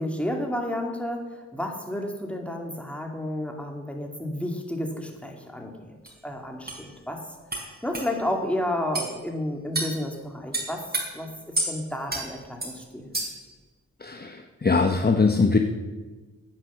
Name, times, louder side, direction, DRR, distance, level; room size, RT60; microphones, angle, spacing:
voice 1, 0.0-7.2 7.8-10.8 11.1-13.1, left 1 dB, 5° left, 2 dB, 2.5 m, -31 dB
sound 1, 6.1-6.2 6.7-6.8 7.5-7.6 7.9-8.1 8.9-9.1 9.7-9.9 10.5-11.0 11.5-11.7 12.1-12.2 12.6-12.7 13.1-13.4, right 2 dB, 35° right, 4.1 m, -28 dB
voice 2, 14.0-15.6, left 4 dB, 35° left, 5 dB, 0.9 m, -22 dB
9.7 x 9.7 x 7.3 m, 1.3 s
cardioid pair, 60°, 29 cm